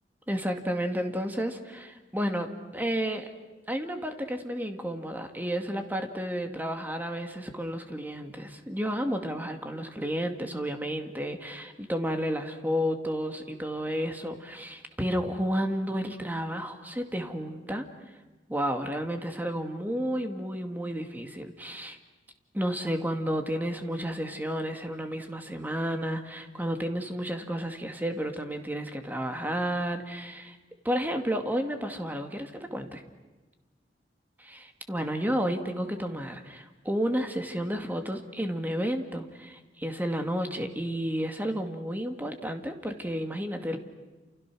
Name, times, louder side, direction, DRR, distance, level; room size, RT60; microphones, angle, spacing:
voice 1, 0.3-3.3 3.7-17.9 18.5-22.0 22.5-30.6 30.8-33.0 34.4-43.8, equal, 10° right, 5 dB, 2.2 m, -31 dB
29.5 x 29.0 x 6.2 m, 1.2 s
head